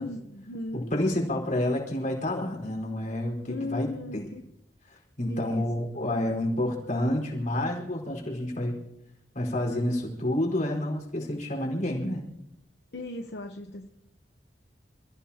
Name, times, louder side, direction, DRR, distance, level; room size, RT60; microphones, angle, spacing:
voice 1, 0.0-0.9 3.5-4.4 5.3-5.6 12.9-13.9, left 2 dB, 70° left, 4 dB, 1.0 m, -36 dB
voice 2, 0.7-4.3 5.2-8.8 9.3-12.2, left 1 dB, 50° left, 0 dB, 4.8 m, -29 dB
29.0 x 15.0 x 2.9 m, 0.81 s
head